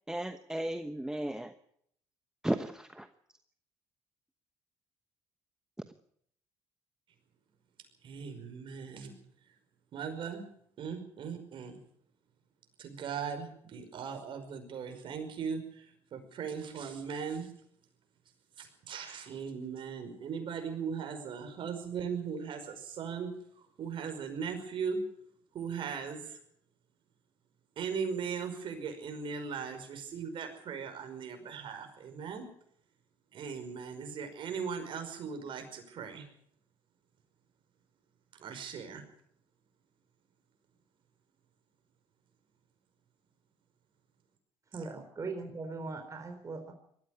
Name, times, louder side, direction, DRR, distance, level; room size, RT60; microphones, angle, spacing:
voice 1, 0.1-1.5 2.4-3.1, right 1 dB, 5° right, 9 dB, 1.1 m, -34 dB
voice 2, 8.0-9.1 9.9-10.4 10.8-11.8 12.8-17.5 18.6-23.3 23.8-25.0 25.5-26.4 27.8-32.4 33.3-36.3 38.4-39.0, right 6 dB, 60° right, 6 dB, 5.3 m, -38 dB
voice 3, 44.7-46.7, right 3 dB, 35° right, 5 dB, 3.7 m, -40 dB
19.5 x 14.0 x 9.5 m, 0.70 s
supercardioid pair, 85°, 10 cm